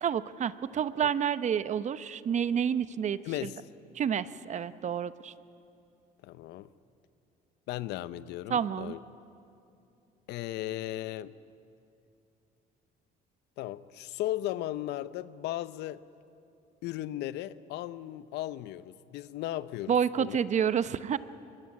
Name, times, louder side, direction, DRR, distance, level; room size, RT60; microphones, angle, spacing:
voice 1, 0.0-3.5 3.9-5.3 8.5-8.9 19.9-21.2, right 8 dB, 45° right, 14 dB, 0.8 m, -29 dB
voice 2, 3.2-3.6 6.2-6.7 7.7-9.0 10.3-11.3 13.6-16.0 16.8-20.4, left 14 dB, 85° left, 16 dB, 0.7 m, -36 dB
23.0 x 23.0 x 9.6 m, 2.6 s
cardioid pair, 110°, 17 cm